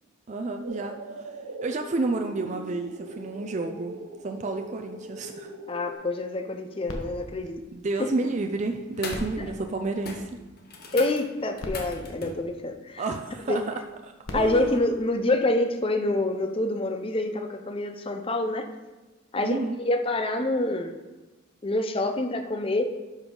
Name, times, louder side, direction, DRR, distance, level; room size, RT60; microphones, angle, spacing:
voice 1, 0.3-4.0 4.2-5.5 7.7-10.4 13.0-13.7 14.0-14.9 19.4-19.8, right 3 dB, 35° right, 4 dB, 0.4 m, -31 dB
sound 1, 0.6-5.9, right 1 dB, 75° right, 0.8 m, -40 dB
voice 2, 5.7-7.6 8.0-8.1 9.4-9.5 10.9-13.0 13.5-13.6 14.3-18.7 19.3-20.9 21.6-22.9, left 2 dB, 25° left, 6 dB, 0.6 m, -27 dB
sound 2, 6.9-8.5 9.0-10.6 11.3-11.4 11.6-13.2 14.0-15.8 16.5-16.6, left 1 dB, 85° left, 1.2 m, -41 dB
sound 3, 8.2-8.5 8.9-9.4 9.6-9.8 10.0-12.4 14.4-14.5, left 3 dB, 45° left, 1.1 m, -39 dB
11.5 x 5.4 x 3.8 m, 1.1 s
head